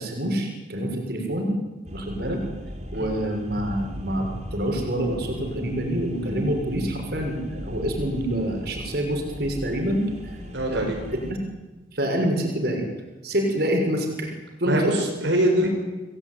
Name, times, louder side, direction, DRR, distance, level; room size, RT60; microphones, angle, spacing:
voice 1, 0.0-1.6 1.9-2.4 2.9-10.1 10.7-11.4 11.9-12.9 13.2-14.3 14.6-14.9, right 1 dB, 55° right, 3 dB, 6.4 m, -26 dB
sound 1, 1.8-11.3, equal, 35° right, 4.0 m, -38 dB
voice 2, 10.5-11.1 14.6-15.7, right 1 dB, 70° right, 1 dB, 5.4 m, -23 dB
28.5 x 20.5 x 9.7 m, 1.2 s
head